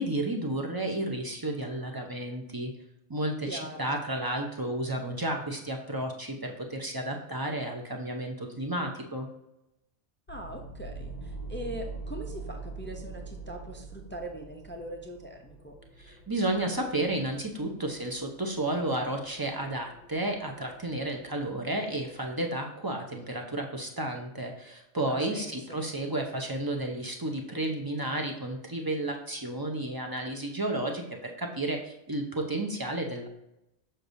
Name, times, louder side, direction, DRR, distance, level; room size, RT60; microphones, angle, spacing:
voice 1, 0.0-2.7 3.1-9.3 16.0-33.3, right 1 dB, 25° right, 2 dB, 0.6 m, -32 dB
voice 2, 3.5-3.9 10.3-15.8 25.1-25.8, right 1 dB, 15° left, 2 dB, 0.4 m, -41 dB
sound 1, 10.3-22.2, right 3 dB, 45° left, 0.8 m, -45 dB
6.6 x 5.9 x 2.6 m, 0.86 s
omnidirectional pair, 1.2 m